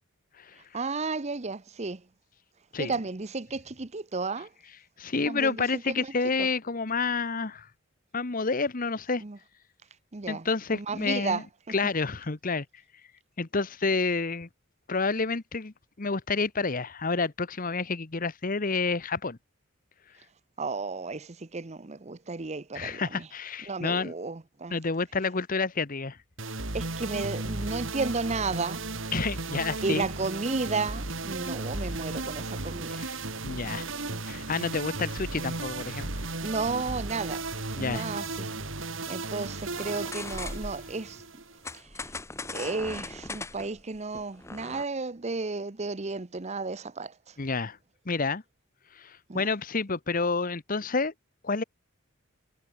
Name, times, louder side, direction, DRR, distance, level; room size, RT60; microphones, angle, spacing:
voice 1, 0.7-2.1 2.8-4.5 5.2-6.1 6.4-6.5 9.2-9.4 10.1-10.5 10.7-11.5 20.6-23.3 23.7-24.8 26.7-28.8 29.8-33.1 33.6-34.3 36.4-37.5 37.7-38.5 39.1-41.2 41.7-42.0 42.5-47.4 49.3-49.4, right 3 dB, 30° right, 0.8 m, -33 dB
voice 2, 5.0-7.7 8.1-9.2 10.3-11.4 11.7-12.6 13.4-14.5 14.9-19.4 22.7-24.1 24.7-26.2 29.1-30.1 33.0-33.1 33.4-33.9 34.3-36.1 37.8-38.3 47.4-47.8 48.1-48.4 48.9-51.1 51.4-51.6, left 4 dB, 40° left, 1.0 m, -29 dB
sound 1, 26.4-41.8, right 3 dB, 65° right, 3.6 m, -35 dB
sound 2, 39.7-40.9 41.6-44.8, left 2 dB, 15° left, 1.0 m, -39 dB
head